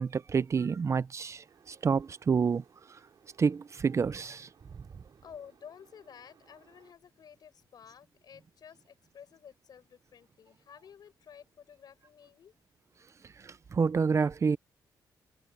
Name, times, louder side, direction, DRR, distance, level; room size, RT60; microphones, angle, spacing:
voice 1, 0.0-2.6 3.4-4.5 13.4-14.6, right 5 dB, 40° right, 0.7 m, -28 dB
sound 1, 1.5-6.9, right 7 dB, 60° right, 7.5 m, -63 dB
voice 2, 5.2-12.5, left 8 dB, 65° left, 6.7 m, -52 dB
cardioid pair, 85°, 7 cm